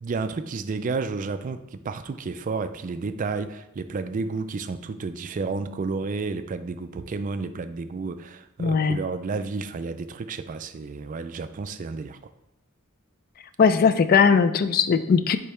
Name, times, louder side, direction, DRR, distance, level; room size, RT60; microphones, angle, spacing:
voice 1, 0.0-12.3, right 4 dB, 40° right, 10 dB, 0.3 m, -31 dB
voice 2, 8.6-9.0 13.6-15.4, left 6 dB, 45° left, 11 dB, 0.3 m, -19 dB
5.1 x 4.5 x 4.3 m, 0.87 s
head